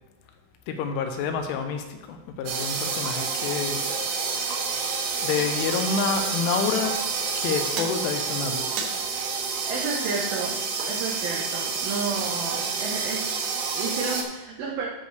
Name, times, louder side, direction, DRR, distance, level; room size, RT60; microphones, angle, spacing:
voice 1, 0.7-3.9 5.2-7.0 7.4-9.0, left 5 dB, 80° left, 5 dB, 3.2 m, -28 dB
sound 1, 2.5-14.2, right 5 dB, 70° right, 3.1 m, -28 dB
voice 2, 9.7-10.6 10.8-14.9, right 4 dB, 90° right, -2 dB, 2.0 m, -31 dB
13.5 x 6.6 x 3.3 m, 1.1 s
omnidirectional pair, 5.7 m